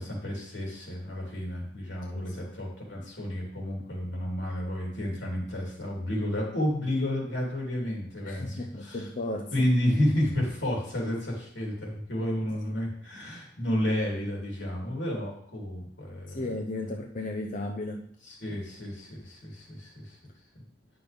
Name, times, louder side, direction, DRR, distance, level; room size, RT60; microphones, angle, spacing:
voice 1, 0.0-9.1 9.5-16.5 18.2-20.2, left 1 dB, 90° left, -2 dB, 3.2 m, -31 dB
voice 2, 8.2-9.5 16.3-18.1, left 2 dB, 45° left, 2 dB, 0.7 m, -34 dB
9.6 x 6.0 x 3.5 m, 0.65 s
head